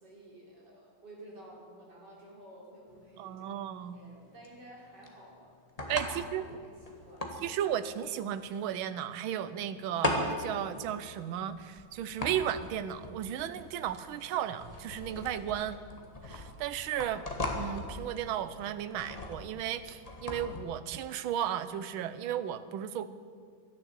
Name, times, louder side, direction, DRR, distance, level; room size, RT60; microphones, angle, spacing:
voice 1, 0.0-3.7 3.9-5.6 5.9-7.4, right 1 dB, 55° right, -4 dB, 4.2 m, -52 dB
sound 1, 2.9-20.6, left 2 dB, 20° left, 1.3 m, -39 dB
voice 2, 3.2-4.0 5.9-6.4 7.4-15.8 16.2-17.3 17.5-23.1, right 10 dB, 80° right, 13 dB, 1.5 m, -34 dB
13.0 x 10.5 x 8.1 m, 2.1 s
omnidirectional pair, 2.2 m